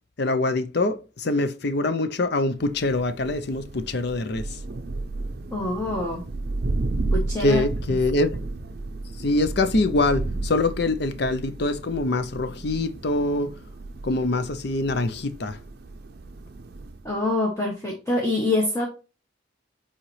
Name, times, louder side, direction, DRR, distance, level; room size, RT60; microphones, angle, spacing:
voice 1, 0.2-4.6 7.4-8.4 9.2-13.5 14.0-15.6, left 2 dB, 55° left, 0.6 m, -24 dB
Thunder, 2.6-17.2, right 2 dB, 50° right, 0.5 m, -33 dB
voice 2, 5.5-6.2 7.1-7.6 17.0-18.9, left 2 dB, 15° left, 1.0 m, -25 dB
7.5 x 4.3 x 3.2 m
head